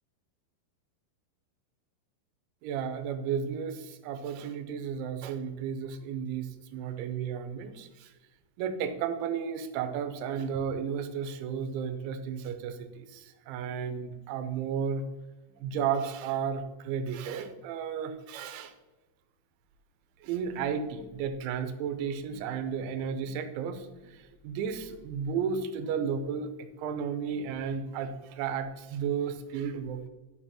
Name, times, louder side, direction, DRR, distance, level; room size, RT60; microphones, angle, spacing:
voice 1, 2.6-8.1 8.6-15.0 15.6-18.7 20.2-30.1, right 7 dB, 85° right, 8 dB, 3.0 m, -33 dB
10.5 x 6.8 x 2.9 m, 1.1 s
omnidirectional pair, 5.4 m